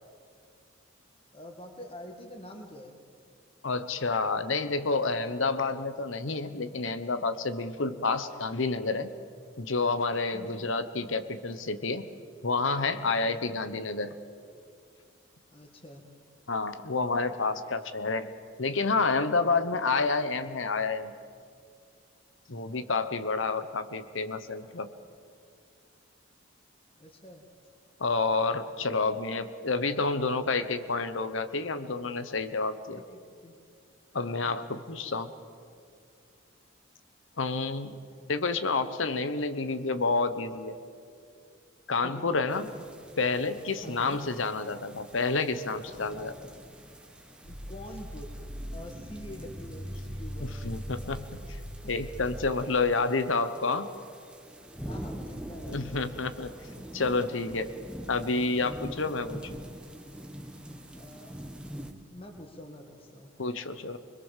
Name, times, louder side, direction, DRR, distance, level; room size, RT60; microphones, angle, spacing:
voice 1, 1.3-2.9 10.3-10.7 13.2-13.6 15.5-16.0 27.0-27.4 32.9-33.6 34.8-35.2 42.0-42.4 42.7-42.8 43.8-44.2 47.3-48.4 48.7-50.7 51.4-51.9 54.9-56.0 60.9-61.4 62.1-63.3, left 1 dB, 25° left, 2 dB, 1.8 m, -46 dB
voice 2, 3.6-9.1 9.6-12.1 12.4-14.1 16.5-18.3 18.6-21.1 22.5-24.9 28.0-33.0 34.1-35.3 37.4-38.0 38.3-40.8 41.9-42.7 43.2-46.5 50.4-51.4 51.9-53.9 55.7-56.5 56.9-57.7 58.1-59.6 63.4-64.0, left 3 dB, 75° left, 11 dB, 1.1 m, -29 dB
sound 1, 42.5-61.9, right 1 dB, 5° right, 1.2 m, -45 dB
sound 2, 47.4-52.5, equal, 25° right, 2.4 m, -40 dB
25.0 x 21.5 x 7.4 m, 2.3 s
head